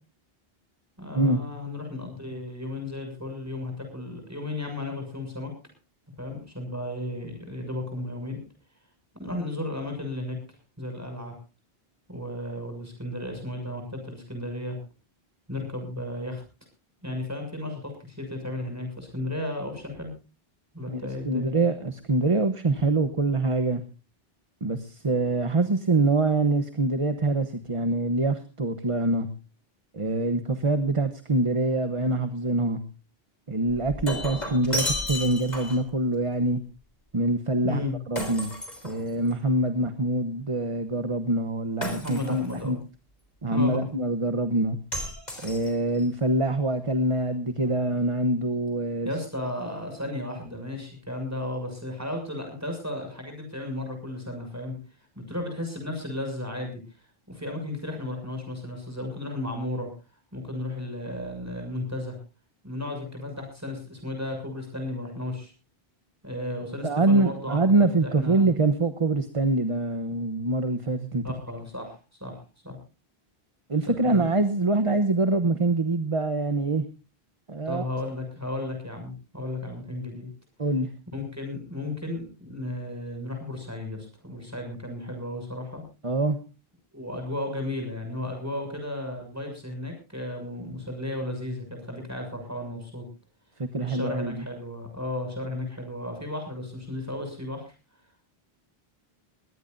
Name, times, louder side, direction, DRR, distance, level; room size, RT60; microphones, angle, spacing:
voice 1, 1.0-5.5 6.2-8.4 9.2-10.4 10.8-11.3 12.1-14.8 15.5-16.4 17.0-20.1 20.7-21.5 37.6-37.9 42.0-42.8 43.5-43.9 49.0-54.8 55.1-56.8 57.3-59.9 60.3-62.2 62.6-65.5 66.2-68.5 71.2-72.3 72.6-72.8 73.9-74.3 77.6-80.3 81.1-85.8 86.9-93.0 93.8-97.7, left 1 dB, 15° right, 4 dB, 6.7 m, -34 dB
voice 2, 20.9-23.8 24.6-29.3 29.9-32.8 33.5-36.6 37.1-37.8 38.1-38.5 38.8-42.8 43.4-44.8 45.4-49.1 66.8-71.2 73.7-76.8 77.5-77.8 80.6-80.9 86.0-86.4 93.6-94.4, right 2 dB, 30° right, 9 dB, 1.1 m, -25 dB
Shatter, 33.7-35.9 38.2-39.4 41.8-42.6 44.9-46.0, left 1 dB, 45° left, 4.0 m, -33 dB
21.5 x 17.5 x 2.6 m, 0.32 s
omnidirectional pair, 1.0 m